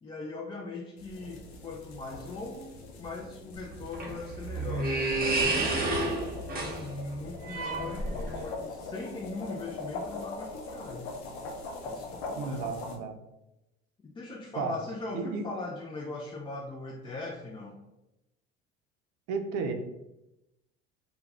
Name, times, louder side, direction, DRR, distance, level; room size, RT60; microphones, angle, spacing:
voice 1, 0.0-6.1 6.4-11.1 11.9-12.8 14.0-17.8, left 3 dB, 15° left, -1 dB, 0.3 m, -40 dB
sound 1, 1.0-13.0, left 3 dB, 85° left, 0.5 m, -42 dB
sound 2, 3.6-8.5, right 2 dB, 30° right, 0.8 m, -30 dB
voice 2, 12.4-13.2 14.6-14.7 15.1-15.4 19.3-19.7, right 5 dB, 65° right, 6 dB, 0.5 m, -33 dB
2.3 x 2.3 x 3.2 m, 0.91 s
hypercardioid pair, 70°, 32 cm